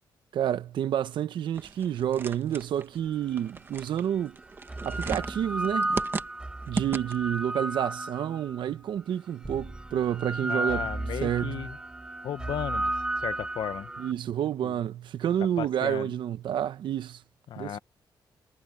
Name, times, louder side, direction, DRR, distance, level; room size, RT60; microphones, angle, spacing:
voice 1, 0.3-4.4 4.8-5.9 6.7-10.9 11.2-11.6 14.0-17.2 17.6-17.8, right 10 dB, 75° right, 0.9 m, -29 dB
sound 1, 1.5-7.4, right 4 dB, 25° right, 1.2 m, -37 dB
sound 2, 3.4-3.5 4.4-8.7 9.4-14.1, right 2 dB, 10° right, 0.4 m, -33 dB
voice 2, 10.4-11.8 12.2-12.9 13.2-13.9 14.6-14.8 15.4-16.1 17.5-17.8, left 10 dB, 75° left, 1.0 m, -35 dB
wide cardioid pair, 155°, 8 cm